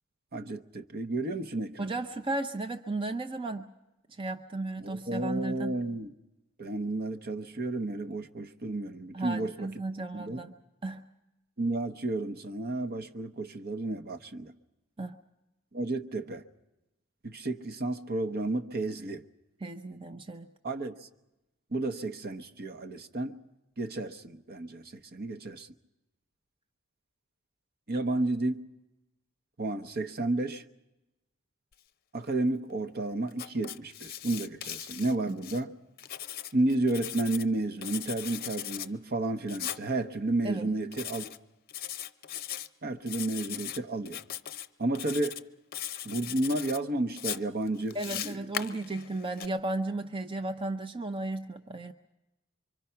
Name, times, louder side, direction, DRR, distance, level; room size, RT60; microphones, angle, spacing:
voice 1, 0.3-1.9 4.8-6.1 6.6-9.7 10.1-10.4 11.6-14.5 15.7-16.4 17.2-19.2 20.6-21.1 21.7-23.4 23.8-25.7 27.9-28.6 29.6-30.6 32.1-35.7 36.5-41.3 42.8-44.2 44.8-45.4 46.0-48.4, right 2 dB, 45° right, 1.0 m, -32 dB
voice 2, 1.8-3.7 4.1-5.8 9.1-10.5 10.8-11.0 15.0-15.2 19.6-20.5 35.3-35.4 40.4-40.7 47.9-51.9, right 2 dB, 25° right, 0.7 m, -34 dB
Writing, 33.3-35.6 36.0-37.5 37.8-38.9 39.5-39.8 40.9-41.4 41.7-42.7 43.1-43.8 44.1-44.7 44.9-45.4 45.7-46.8 47.2-49.5, left 11 dB, 45° left, 0.7 m, -39 dB
25.0 x 24.5 x 5.8 m
head